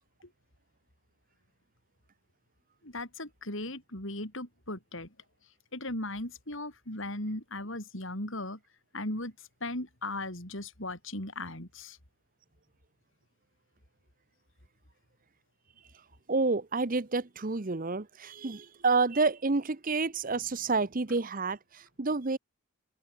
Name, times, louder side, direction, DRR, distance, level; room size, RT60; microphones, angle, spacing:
voice 1, 2.8-5.1 5.7-8.6 8.9-12.0, left 1 dB, 60° left, 6.4 m, -37 dB
voice 2, 16.3-22.4, right 3 dB, 40° right, 0.9 m, -29 dB
head